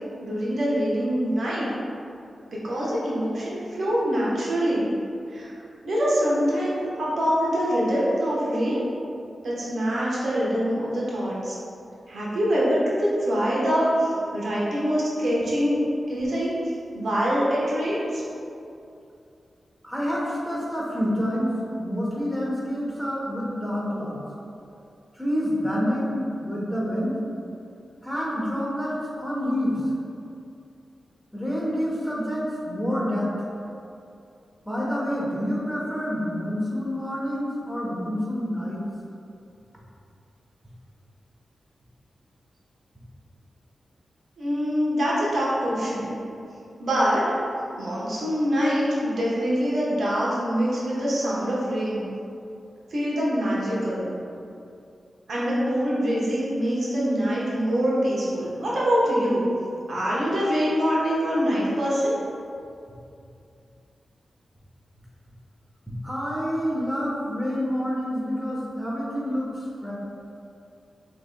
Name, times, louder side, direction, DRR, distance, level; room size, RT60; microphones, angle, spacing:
voice 1, 0.2-1.7 2.5-4.9 5.3-5.5 5.8-8.8 9.4-11.6 12.1-15.8 16.1-16.5 16.9-18.2 44.4-46.1 46.8-47.2 47.8-52.0 52.9-54.1 55.3-59.4 59.9-62.2, equal, 75° right, -7 dB, 1.0 m, -24 dB
voice 2, 19.8-24.2 25.1-27.2 28.0-29.8 31.3-33.5 34.6-38.9 66.0-69.9, equal, 5° left, -5 dB, 1.0 m, -28 dB
5.9 x 2.9 x 2.2 m, 2.6 s
cardioid pair, 60°, 0 cm